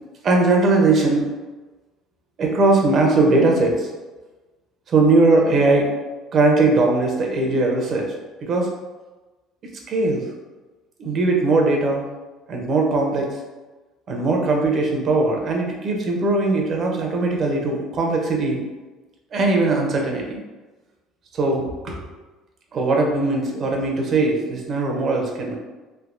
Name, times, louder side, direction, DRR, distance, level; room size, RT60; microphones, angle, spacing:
voice 1, 0.2-1.3 2.4-3.9 4.9-5.9 6.3-8.1 8.4-8.7 9.9-10.2 11.0-12.0 12.5-13.3 14.1-18.6 19.3-20.4 21.3-22.0 22.7-25.6, right 3 dB, 45° right, 1 dB, 0.7 m, -19 dB
3.3 x 2.6 x 2.5 m, 1.2 s
supercardioid pair, 100°, 0 cm